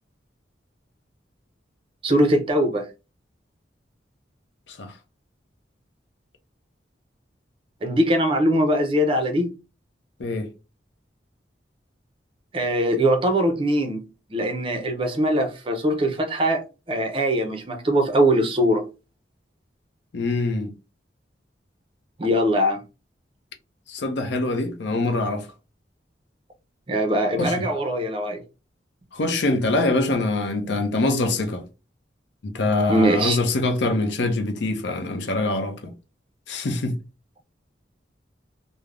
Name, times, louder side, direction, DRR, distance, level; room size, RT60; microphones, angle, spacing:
voice 1, 2.0-2.9 7.8-9.5 12.5-14.0 14.3-16.6 16.9-18.8 22.2-22.8 26.9-28.4 32.9-33.4, equal, 30° right, 0.4 m, -21 dB
voice 2, 20.1-20.7 23.9-25.5 27.4-27.6 29.1-31.6 32.4-35.9 36.5-37.0, left 2 dB, 75° left, 0.5 m, -24 dB
3.2 x 2.0 x 2.4 m
head